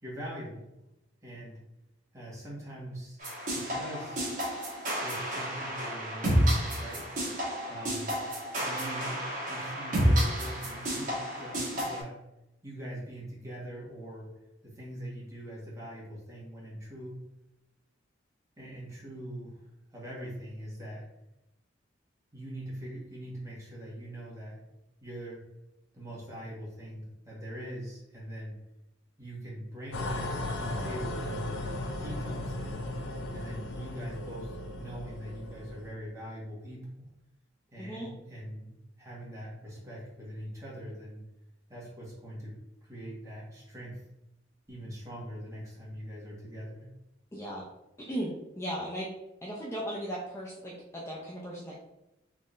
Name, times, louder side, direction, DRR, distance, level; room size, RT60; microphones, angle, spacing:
voice 1, 0.0-0.7 1.2-1.6 2.1-3.2 3.5-4.3 5.0-7.1 7.7-8.2 8.6-9.2 9.5-12.2 12.6-14.3 14.6-17.2 18.6-19.6 19.9-21.1 22.3-24.6 25.0-25.4 25.9-28.5 29.2-31.6 32.0-32.8 33.3-37.1 37.7-41.2 41.7-42.5 42.8-44.0 44.7-46.9, equal, 15° right, -6 dB, 1.4 m, -42 dB
sound 1, 3.2-12.0, equal, 45° right, 1.2 m, -30 dB
sound 2, 29.9-35.9, left 1 dB, 80° left, 0.6 m, -36 dB
voice 2, 37.8-38.1 47.3-47.7 48.0-49.1 49.4-51.8, equal, 15° left, -5 dB, 0.5 m, -37 dB
3.7 x 3.2 x 2.5 m, 0.91 s
head